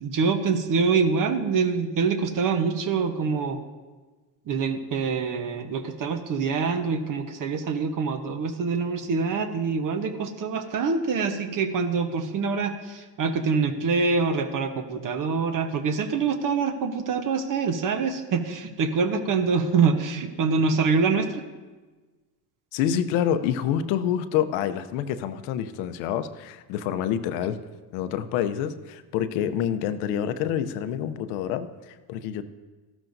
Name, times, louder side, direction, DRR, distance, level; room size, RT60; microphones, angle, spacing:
voice 1, 0.0-3.6 4.5-21.4, right 5 dB, 45° right, 7 dB, 1.1 m, -25 dB
voice 2, 22.7-27.6 27.9-32.4, left 9 dB, 85° left, 11 dB, 0.8 m, -27 dB
13.5 x 12.0 x 2.7 m, 1.3 s
supercardioid pair, 90°, 44 cm